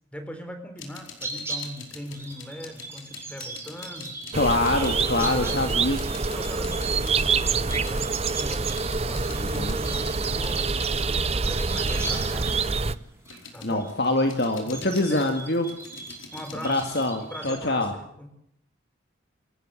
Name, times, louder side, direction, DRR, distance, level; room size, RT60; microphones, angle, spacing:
voice 1, 0.1-4.2 4.8-5.9 6.3-8.7 9.1-10.7 11.1-13.0 13.5-13.9 14.6-15.3 16.3-16.8 17.2-18.3, equal, 5° left, 7 dB, 4.0 m, -40 dB
sound 1, 0.8-12.0 12.5-17.1, left 5 dB, 85° left, 4.8 m, -45 dB
sound 2, 0.8-17.5, right 3 dB, 15° right, 5.7 m, -39 dB
voice 2, 4.3-6.0 9.4-9.8 13.6-15.7 16.6-17.9, left 2 dB, 55° left, 5 dB, 2.2 m, -25 dB
sound 3, 4.3-13.0, right 4 dB, 30° right, 0.7 m, -26 dB
27.0 x 14.0 x 7.9 m, 0.73 s
head